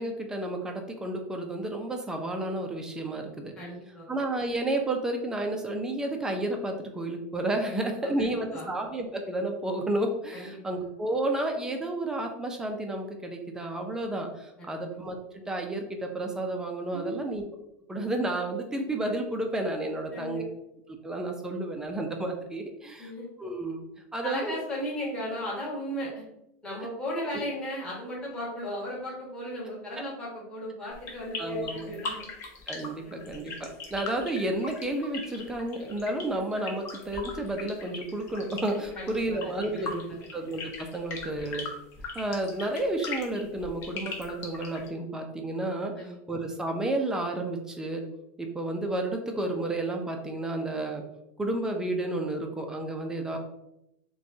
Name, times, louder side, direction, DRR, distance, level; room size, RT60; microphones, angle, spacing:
voice 1, 0.0-3.5 4.1-17.4 17.9-20.4 21.0-23.1 23.4-23.8 24.1-24.5 31.4-31.9 32.7-40.0 40.3-41.7 42.2-48.0 48.4-51.0 51.4-53.4, right 1 dB, 10° right, 3 dB, 0.5 m, -31 dB
voice 2, 3.6-4.1 7.6-8.1 8.5-8.7 10.3-10.5 14.6-14.8 16.9-17.1 20.1-20.5 23.0-23.3 24.2-26.2 26.6-32.3 33.0-33.2 38.9-39.5 39.8-39.9 46.0-46.1, equal, 10° left, -6 dB, 1.3 m, -36 dB
sound 1, 30.9-44.9, left 4 dB, 35° left, 0.9 m, -39 dB
6.1 x 2.3 x 2.7 m, 0.83 s
supercardioid pair, 150°, 8 cm